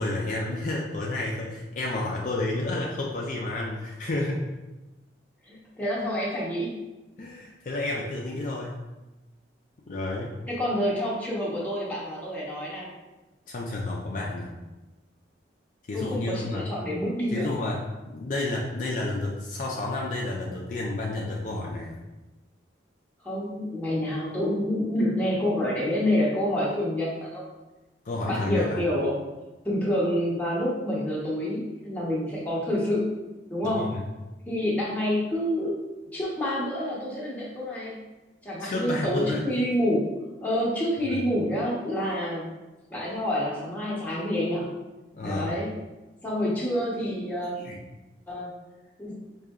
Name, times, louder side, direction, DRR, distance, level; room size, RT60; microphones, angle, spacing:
voice 1, 0.0-4.4 7.2-8.8 9.9-10.4 13.5-14.5 15.9-16.7 17.3-22.0 28.1-28.9 33.6-34.0 38.6-39.4 41.1-41.2 45.1-45.6 47.5-47.8, left 2 dB, 45° left, -2 dB, 0.4 m, -31 dB
voice 2, 5.5-6.8 10.5-12.9 15.9-17.5 23.2-27.5 28.3-29.2 29.6-33.1 33.5-33.9 34.5-35.7 36.1-38.0 38.4-40.1 40.4-42.6 42.9-44.7 45.2-45.7 46.2-47.5 48.3-48.5 49.0-49.2, left 1 dB, 10° left, -6 dB, 0.8 m, -28 dB
4.9 x 2.7 x 2.3 m, 1.1 s
head